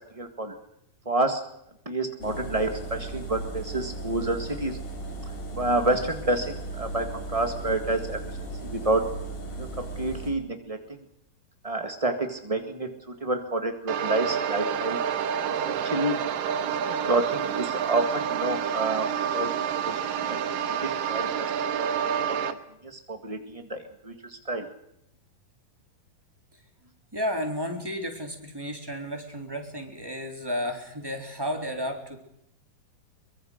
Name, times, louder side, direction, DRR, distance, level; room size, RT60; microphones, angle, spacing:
voice 1, 0.1-0.5 1.0-1.4 1.8-4.8 5.5-8.2 8.6-9.0 9.5-10.8 11.6-15.0 15.7-16.2 16.7-21.5 21.8-21.9 22.3-22.4 22.8-24.7, right 2 dB, 50° right, 5 dB, 0.4 m, -29 dB
sound 1, 2.2-10.3, right 2 dB, 70° left, 5.9 m, -36 dB
sound 2, 13.9-22.5, right 8 dB, 70° right, 2.8 m, -28 dB
voice 2, 27.1-32.2, equal, 5° right, 3 dB, 3.1 m, -32 dB
23.5 x 23.0 x 6.6 m, 0.78 s
omnidirectional pair, 4.2 m